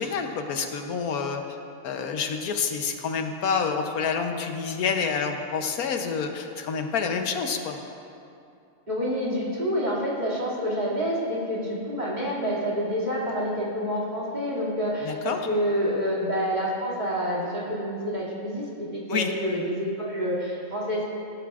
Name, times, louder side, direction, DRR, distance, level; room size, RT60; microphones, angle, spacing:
voice 1, 0.0-1.4 1.8-7.8 15.0-15.4 19.1-19.3, left 6 dB, 85° left, 5 dB, 1.3 m, -28 dB
voice 2, 8.9-21.1, equal, 30° right, -6 dB, 2.6 m, -28 dB
18.5 x 12.0 x 2.5 m, 2.6 s
omnidirectional pair, 1.5 m